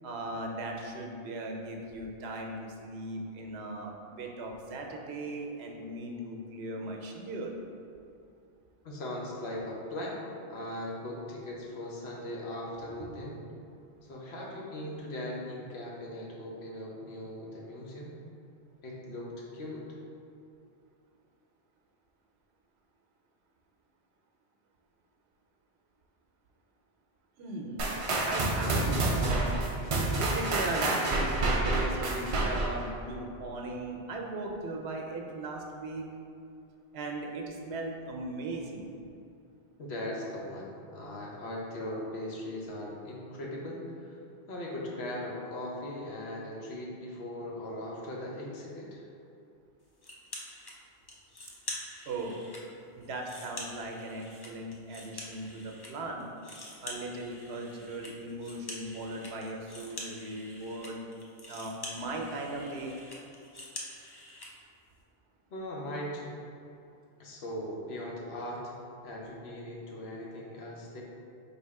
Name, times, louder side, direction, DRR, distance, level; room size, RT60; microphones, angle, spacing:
voice 1, 0.0-7.6 12.8-13.2 27.4-27.8 28.2-29.6 30.2-36.1 36.9-38.9 52.1-52.5 52.9-56.3 56.8-61.0 61.5-63.0, right 2 dB, 80° right, 1 dB, 0.9 m, -38 dB
voice 2, 8.8-10.2 10.5-13.4 14.0-18.1 18.8-19.9 39.8-44.2 44.5-49.0 65.5-66.4 67.2-68.7 69.0-71.0, left 1 dB, 75° left, -3 dB, 1.0 m, -39 dB
sound 1, 27.8-32.9, right 2 dB, 50° right, 0.4 m, -28 dB
sound 2, 50.0-50.7 51.1-52.6 53.0-55.9 56.2-64.5, left 1 dB, 35° left, 0.4 m, -45 dB
3.4 x 2.7 x 4.6 m, 2.5 s
omnidirectional pair, 1.1 m